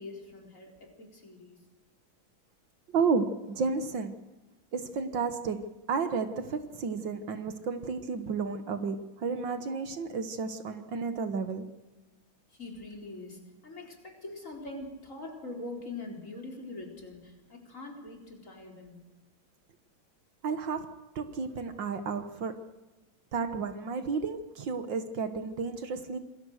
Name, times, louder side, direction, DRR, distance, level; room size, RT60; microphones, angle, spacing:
voice 1, 0.0-1.7 12.5-19.0, left 2 dB, 40° left, 2 dB, 4.5 m, -43 dB
voice 2, 2.9-4.2 4.7-11.7 20.4-22.7 23.3-26.2, right 5 dB, 65° right, 10 dB, 2.0 m, -32 dB
27.0 x 20.5 x 6.6 m, 1.1 s
omnidirectional pair, 2.2 m